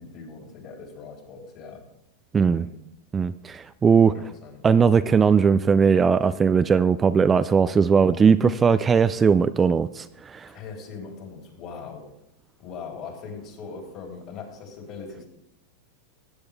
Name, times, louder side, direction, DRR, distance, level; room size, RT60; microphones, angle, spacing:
voice 1, 0.0-1.8 2.5-2.8 4.0-4.6 10.5-12.0 12.6-15.2, left 5 dB, 45° left, 1 dB, 3.8 m, -40 dB
voice 2, 2.3-2.7 3.1-4.2 4.6-10.5, right 6 dB, 20° right, 13 dB, 0.4 m, -19 dB
16.0 x 8.0 x 3.5 m, 0.81 s
hypercardioid pair, 105°, 0 cm